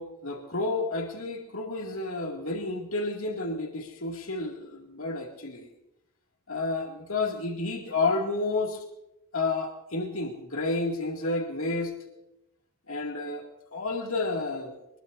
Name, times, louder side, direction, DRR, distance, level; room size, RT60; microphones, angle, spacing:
voice 1, 0.0-5.7 6.5-8.8 9.3-11.9 12.9-13.4 13.7-14.7, left 3 dB, 70° left, 1 dB, 2.5 m, -30 dB
24.5 x 21.5 x 2.7 m, 0.88 s
head